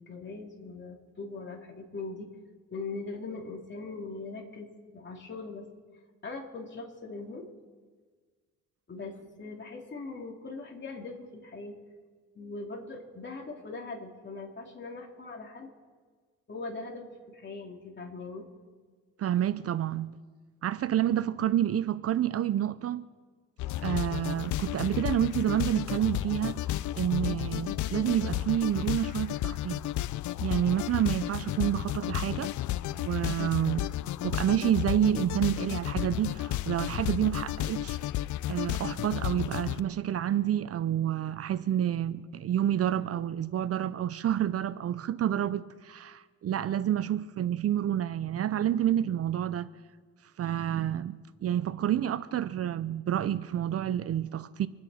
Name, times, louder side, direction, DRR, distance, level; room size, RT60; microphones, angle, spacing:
voice 1, 0.0-2.3 2.7-5.7 6.2-7.4 8.9-11.7 12.3-15.7 16.5-18.4, left 3 dB, 35° left, 3.0 m, -41 dB
voice 2, 19.2-20.1 20.6-23.0 23.8-26.6 26.9-29.8 30.4-32.5 33.0-33.9 34.2-38.0 38.5-49.7 50.4-54.7, right 11 dB, 50° right, 0.6 m, -29 dB
sound 1, 23.6-39.8, left 14 dB, 75° left, 0.5 m, -32 dB
26.5 x 9.6 x 4.3 m
cardioid pair, 90°, 30 cm